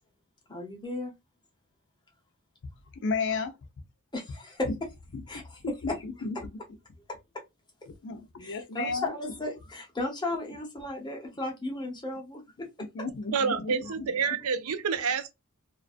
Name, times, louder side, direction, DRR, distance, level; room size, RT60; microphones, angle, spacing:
voice 1, 0.5-1.1 4.1-4.7 5.3-5.6 5.9-6.0 7.1-7.4 8.4-13.1, left 2 dB, 20° left, 0.8 m, -35 dB
voice 2, 3.0-3.6 4.7-4.8 5.1-6.5 7.9-9.1 12.9-14.1, left 4 dB, 55° left, 0.4 m, -33 dB
voice 3, 13.3-15.3, right 6 dB, 75° right, 0.5 m, -28 dB
2.4 x 2.2 x 2.4 m
head